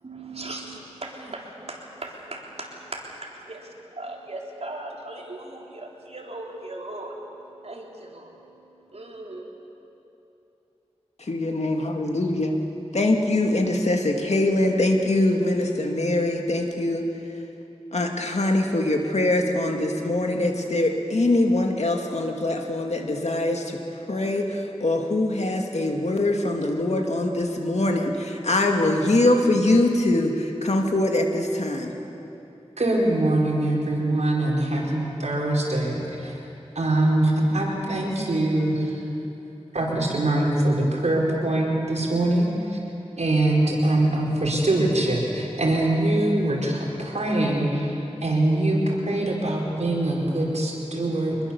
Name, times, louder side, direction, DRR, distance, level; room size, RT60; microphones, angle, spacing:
voice 1, 0.0-3.0 3.5-3.6 4.0-9.5, right 2 dB, 65° right, -1 dB, 3.6 m, -38 dB
voice 2, 11.2-12.6 12.9-17.0 17.9-23.8 24.1-31.9, left 2 dB, 80° left, 2 dB, 2.3 m, -23 dB
voice 3, 32.8-36.4 36.7-39.0 39.7-42.8 43.2-47.9 48.2-51.4, right 1 dB, 85° right, -3 dB, 4.6 m, -23 dB
25.0 x 21.0 x 7.2 m, 2.9 s
wide cardioid pair, 65°, 11 cm